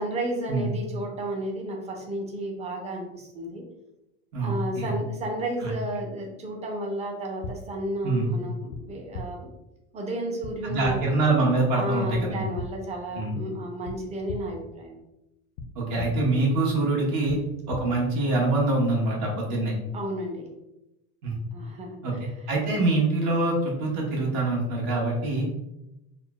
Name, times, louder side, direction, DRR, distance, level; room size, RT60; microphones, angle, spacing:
voice 1, 0.0-3.6 4.4-9.5 9.9-11.0 11.7-15.0 19.9-20.5 21.5-22.3, right 1 dB, 20° right, 1 dB, 0.5 m, -32 dB
voice 2, 4.3-4.9 5.6-5.7 8.0-8.3 10.6-12.4 13.1-13.4 15.7-17.4 17.7-19.7 21.2-21.3 22.0-22.1 22.5-25.5, right 2 dB, 60° right, -2 dB, 1.2 m, -24 dB
sound 1, 7.4-7.5 8.7-8.8 9.1-9.2 10.4-10.5 10.8-11.0 12.1-12.2 12.6-12.7 13.8-13.9 14.3-14.4 15.6-15.7 16.0-16.1 17.3-17.4 17.7-17.8, left 3 dB, 85° left, 0.6 m, -35 dB
3.7 x 2.1 x 2.2 m, 0.91 s
supercardioid pair, 130°, 36 cm